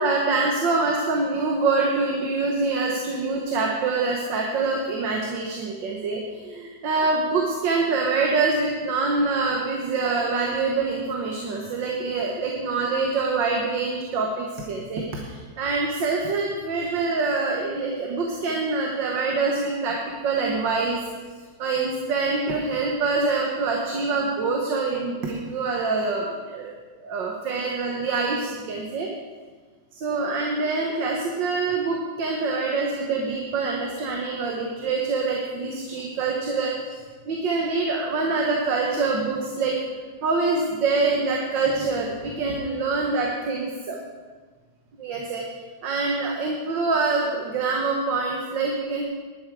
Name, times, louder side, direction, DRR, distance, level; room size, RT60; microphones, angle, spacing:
voice 1, 0.0-20.0 20.2-21.0 21.6-26.7 27.0-29.1 29.9-37.0 37.3-39.8 40.2-44.0 45.0-45.4 45.8-49.0, right 3 dB, 80° right, 0 dB, 1.9 m, -25 dB
11.5 x 11.5 x 4.7 m, 1.4 s
omnidirectional pair, 2.0 m